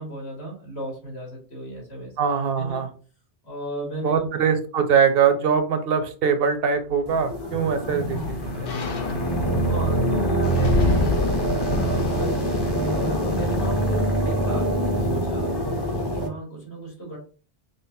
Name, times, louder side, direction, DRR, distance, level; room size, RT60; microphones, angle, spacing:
voice 1, 0.0-2.1 2.6-2.8 3.4-4.3 9.6-17.2, right 2 dB, 85° left, -3 dB, 2.0 m, -35 dB
voice 2, 2.2-2.9 4.0-8.8, right 6 dB, 70° right, 8 dB, 0.8 m, -22 dB
sound 1, 6.9-13.3 13.7-13.8, left 4 dB, 65° left, 0.8 m, -30 dB
sound 2, 7.1-16.3, right 1 dB, 30° left, 0.6 m, -24 dB
5.1 x 2.0 x 2.6 m, 0.39 s
omnidirectional pair, 1.1 m